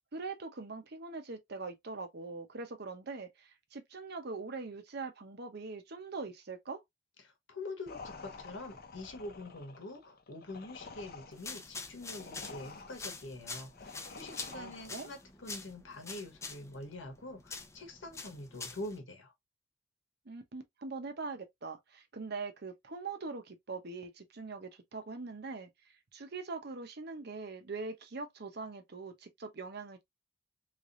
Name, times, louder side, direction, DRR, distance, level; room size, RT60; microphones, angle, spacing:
voice 1, 0.1-6.8 14.5-15.1 20.3-25.7 26.1-30.0, right 4 dB, 60° right, 0.9 m, -42 dB
voice 2, 7.2-19.3, left 2 dB, 90° left, 1.3 m, -45 dB
sound 1, 7.9-15.2, left 4 dB, 55° left, 0.8 m, -50 dB
sound 2, 11.3-19.0, left 4 dB, 15° left, 0.5 m, -46 dB
3.6 x 3.3 x 2.5 m
head